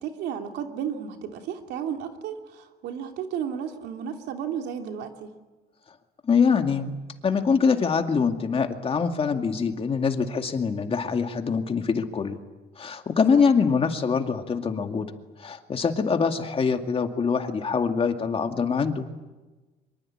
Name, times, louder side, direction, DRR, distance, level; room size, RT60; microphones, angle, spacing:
voice 1, 0.0-5.3, right 8 dB, 80° right, 4 dB, 3.0 m, -33 dB
voice 2, 6.2-6.9 7.2-12.4 12.8-15.1 15.4-19.1, left 5 dB, 35° left, 5 dB, 2.2 m, -24 dB
25.0 x 23.5 x 8.8 m, 1.2 s
cardioid pair, 110°, 17 cm